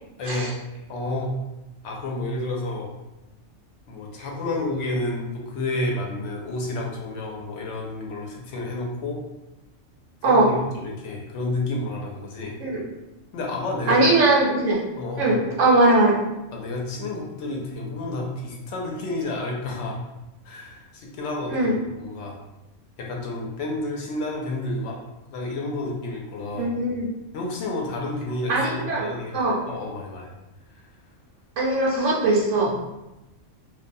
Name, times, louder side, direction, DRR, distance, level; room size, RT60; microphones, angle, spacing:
voice 1, 0.2-0.5 0.9-1.3 1.8-2.9 3.9-9.2 10.2-12.6 13.3-14.0 15.0-15.4 16.5-20.0 20.4-22.4 23.0-25.0 25.3-26.7 27.3-29.4 29.7-30.3 30.7-30.9, left 2 dB, 70° left, 0 dB, 0.9 m, -30 dB
voice 2, 13.9-14.8 15.2-16.2 21.5-21.7 26.5-27.1 28.5-29.6 31.6-32.8, right 2 dB, 75° right, -3 dB, 1.0 m, -20 dB
2.5 x 2.2 x 2.5 m, 0.98 s
omnidirectional pair, 1.3 m